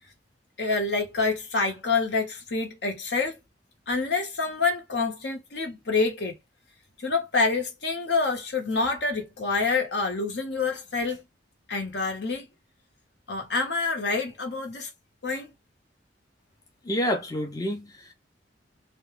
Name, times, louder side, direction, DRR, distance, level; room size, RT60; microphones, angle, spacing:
voice 1, 0.6-3.4 3.9-6.4 7.0-11.2 11.7-12.5 13.3-14.9 15.2-15.5, left 4 dB, 65° left, 0.8 m, -27 dB
voice 2, 16.8-18.1, equal, 20° left, 0.5 m, -28 dB
2.2 x 2.1 x 3.1 m
head